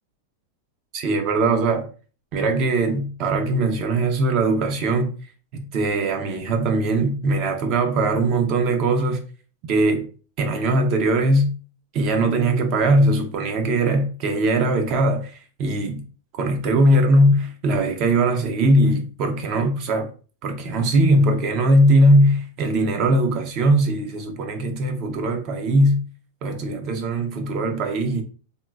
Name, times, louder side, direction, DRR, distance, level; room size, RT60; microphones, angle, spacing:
voice 1, 0.9-1.9 2.3-5.1 5.5-9.2 9.7-10.1 10.4-11.5 11.9-16.0 16.4-20.1 20.4-26.0 26.4-28.2, right 1 dB, 35° right, 0.5 m, -20 dB
3.8 x 2.1 x 2.3 m
supercardioid pair, 165°, 0 cm